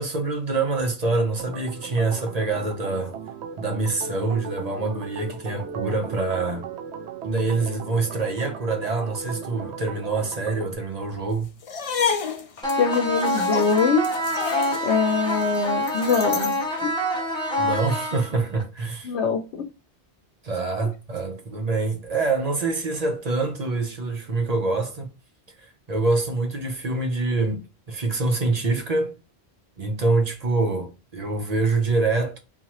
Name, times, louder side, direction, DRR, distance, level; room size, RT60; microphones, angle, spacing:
voice 1, 0.0-3.2 3.6-6.7 7.2-11.5 17.6-19.1 20.4-25.1 25.6-29.1 29.8-32.4, right 3 dB, 45° right, 0.7 m, -25 dB
Organ, 1.4-10.8, right 7 dB, 80° right, 0.8 m, -37 dB
sound 1, 11.6-16.6, left 6 dB, 50° left, 0.4 m, -30 dB
sound 2, 12.6-18.6, left 1 dB, 5° left, 1.1 m, -26 dB
voice 2, 12.8-14.1 14.8-16.9 19.0-19.6, left 5 dB, 90° left, 0.9 m, -23 dB
3.8 x 2.8 x 2.9 m
omnidirectional pair, 1.1 m